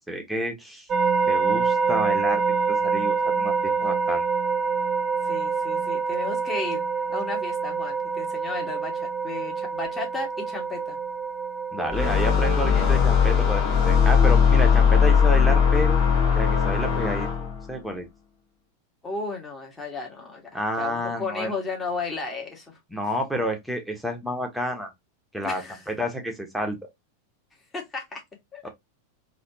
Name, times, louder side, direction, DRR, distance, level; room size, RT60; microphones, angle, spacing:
voice 1, 0.1-0.9 1.3-2.4 2.7-4.2 11.7-16.0 16.3-17.3 17.7-18.1 20.5-21.5 22.9-24.9 25.3-25.6 25.9-26.8, equal, ahead, 1.3 m, -29 dB
sound 1, 0.9-12.4, right 5 dB, 25° right, 0.6 m, -26 dB
voice 2, 5.2-6.8 7.1-11.0 19.0-22.8 25.4-25.8 27.7-28.2 28.5-28.7, left 3 dB, 15° left, 1.7 m, -34 dB
sound 2, 11.9-17.6, left 6 dB, 35° left, 1.6 m, -19 dB
4.0 x 2.9 x 2.9 m
figure-of-eight pair, 90°, 0 cm